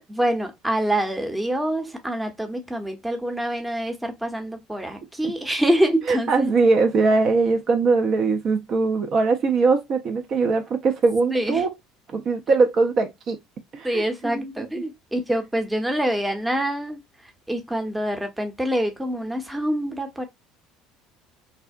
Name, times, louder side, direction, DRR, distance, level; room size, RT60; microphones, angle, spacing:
voice 1, 0.1-6.5 11.3-11.6 13.8-20.2, right 1 dB, 10° right, 0.7 m, -26 dB
voice 2, 6.1-11.7 12.1-13.4 13.7-14.6, right 4 dB, 50° right, 0.5 m, -21 dB
2.6 x 2.0 x 2.4 m
hypercardioid pair, 65°, 0 cm